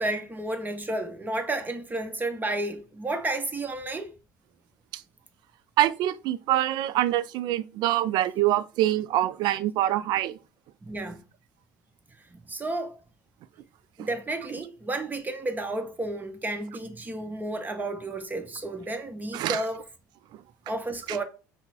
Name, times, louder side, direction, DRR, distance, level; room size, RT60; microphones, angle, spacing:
voice 1, 0.0-4.1 10.8-11.2 12.3-12.9 14.0-19.9 20.7-21.2, right 2 dB, 20° right, 0.9 m, -32 dB
voice 2, 5.8-10.4 14.0-14.1 19.3-19.6 21.1-21.2, right 13 dB, 50° right, 0.4 m, -25 dB
5.8 x 2.1 x 4.1 m
figure-of-eight pair, 60°, 9 cm